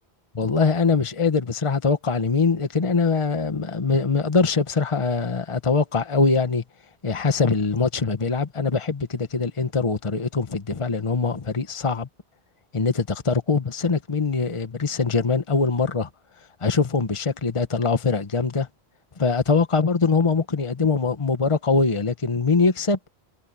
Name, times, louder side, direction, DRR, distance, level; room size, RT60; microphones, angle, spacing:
voice 1, 0.3-6.6 7.0-12.1 12.7-16.1 16.6-18.7 19.2-23.0, left 4 dB, 30° left, 1.2 m, -22 dB
omnidirectional pair, 1.1 m